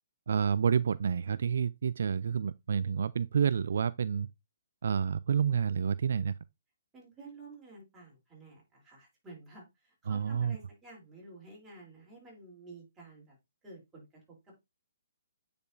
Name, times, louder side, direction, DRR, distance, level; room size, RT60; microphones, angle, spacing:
voice 1, 0.3-4.3 4.8-6.3 10.1-10.6, right 7 dB, 65° right, 0.3 m, -29 dB
voice 2, 6.9-13.3 13.6-14.1 14.4-14.5, right 3 dB, 10° right, 3.5 m, -52 dB
9.0 x 4.9 x 2.7 m
hypercardioid pair, 155°, 0 cm